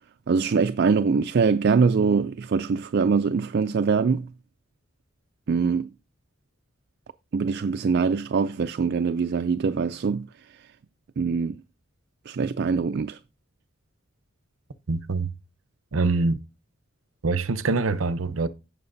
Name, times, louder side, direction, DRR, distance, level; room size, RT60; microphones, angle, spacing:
voice 1, 0.3-4.3 5.5-5.9 7.3-10.3 11.2-11.6 12.3-13.2, right 5 dB, 50° right, 0.4 m, -23 dB
voice 2, 14.9-15.3 15.9-16.4 17.2-18.5, right 3 dB, 85° right, 0.7 m, -24 dB
16.5 x 5.8 x 2.6 m
head